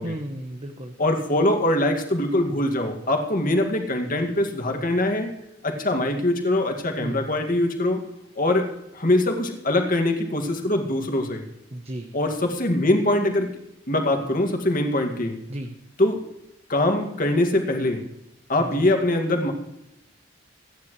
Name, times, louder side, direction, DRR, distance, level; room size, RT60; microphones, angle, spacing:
voice 1, 0.0-0.9 7.0-7.3 11.7-12.1 15.5-15.7 18.6-18.9, right 1 dB, 35° right, 4 dB, 1.1 m, -34 dB
voice 2, 1.0-5.3 5.6-8.0 8.4-8.7 8.9-11.4 12.1-13.5 13.9-15.4 16.0-16.2 16.7-18.0 18.5-19.5, left 1 dB, 45° left, 3 dB, 2.2 m, -23 dB
25.0 x 10.5 x 3.2 m, 0.85 s
head